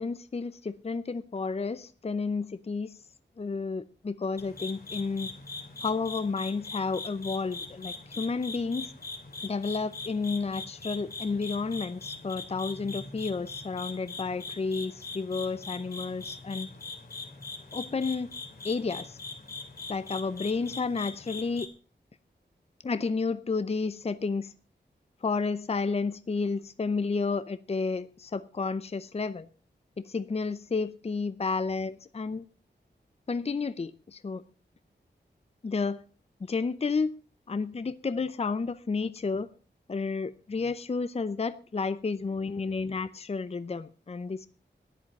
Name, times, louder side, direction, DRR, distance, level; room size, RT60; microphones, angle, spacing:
voice 1, 0.0-2.9 3.4-5.3 5.8-8.9 9.4-16.7 17.7-18.3 18.6-19.2 19.9-21.7 22.8-24.5 25.2-29.5 30.0-32.4 33.3-34.4 35.6-36.0 36.4-37.1 37.5-39.5 39.9-44.5, left 4 dB, 35° left, 0.6 m, -31 dB
sound 1, 4.4-21.7, left 3 dB, 55° left, 2.8 m, -41 dB
14.0 x 10.5 x 5.3 m
wide cardioid pair, 120°, 19 cm